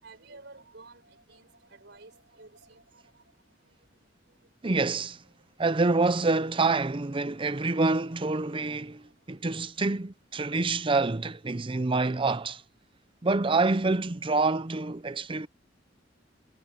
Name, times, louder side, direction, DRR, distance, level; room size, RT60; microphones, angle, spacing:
voice 1, 0.0-3.4 3.7-4.5 5.2-5.5 7.3-9.3, right 3 dB, 65° right, 6.3 m, -55 dB
voice 2, 4.6-5.2 5.6-12.6 13.2-15.5, right 3 dB, 30° right, 0.6 m, -27 dB
head